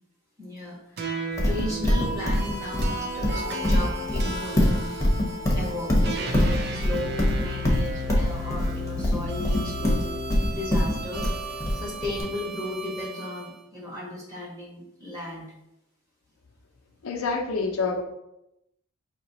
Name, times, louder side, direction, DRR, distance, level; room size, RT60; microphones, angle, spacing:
voice 1, 0.4-4.9 5.5-10.2 10.4-11.3 11.7-15.5, left 1 dB, 15° right, -4 dB, 1.2 m, -35 dB
sound 1, 1.0-13.5, equal, 50° right, 0.4 m, -34 dB
Livestock farm animals working animals, 1.4-12.2, left 1 dB, 15° left, 0.8 m, -23 dB
voice 2, 17.0-18.0, left 4 dB, 80° left, 2 dB, 0.6 m, -27 dB
4.9 x 2.9 x 2.8 m, 0.85 s
head